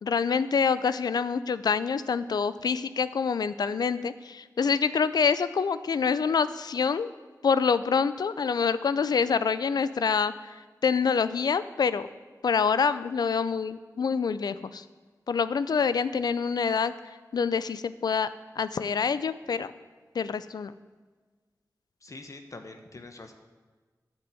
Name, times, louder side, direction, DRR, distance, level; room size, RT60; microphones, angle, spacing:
voice 1, 0.0-7.1 7.4-12.1 12.4-14.8 15.3-16.9 17.3-18.3 18.6-19.7 20.1-20.7, left 6 dB, 85° left, 14 dB, 0.4 m, -26 dB
voice 2, 22.0-23.3, left 3 dB, 55° left, 5 dB, 0.9 m, -44 dB
9.8 x 6.0 x 7.6 m, 1.4 s
wide cardioid pair, 60°, 7 cm